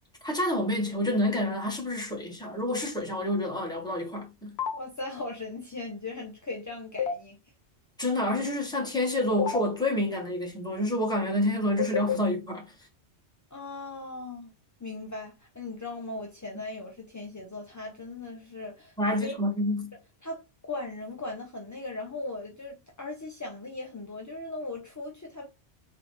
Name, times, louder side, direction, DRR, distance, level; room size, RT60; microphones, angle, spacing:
voice 1, 0.2-4.6 8.0-12.7 19.0-19.9, left 1 dB, 5° left, 1.2 m, -28 dB
sound 1, 4.6-4.7 7.0-7.1 9.4-9.6 11.8-12.2, left 7 dB, 65° left, 1.1 m, -27 dB
voice 2, 4.7-7.4 13.5-14.5 14.8-18.9 19.2-19.3 20.2-25.6, left 2 dB, 25° left, 0.4 m, -38 dB
3.8 x 3.2 x 3.1 m
omnidirectional pair, 1.2 m